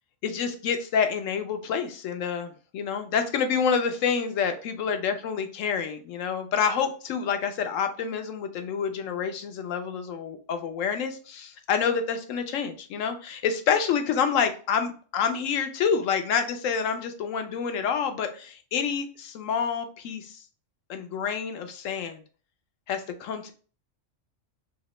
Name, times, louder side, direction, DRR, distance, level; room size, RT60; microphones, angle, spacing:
voice 1, 0.2-20.4 20.9-22.2 22.9-23.5, left 6 dB, 80° left, 7 dB, 1.0 m, -28 dB
2.9 x 2.8 x 3.0 m, 0.39 s
omnidirectional pair, 1.3 m